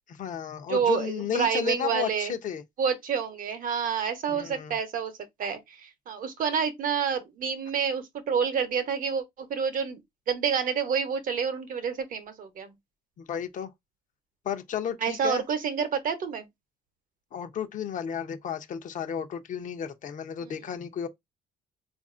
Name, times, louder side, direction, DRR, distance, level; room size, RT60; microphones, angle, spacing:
voice 1, 0.1-2.6 4.3-4.7 13.2-13.7 14.4-15.4 17.3-21.1, left 8 dB, 50° left, 0.7 m, -33 dB
voice 2, 0.7-2.3 2.8-10.0 10.3-12.7 15.0-16.5 20.4-20.6, right 7 dB, 55° right, 0.9 m, -28 dB
4.0 x 2.5 x 2.5 m
cardioid pair, 110°, 17 cm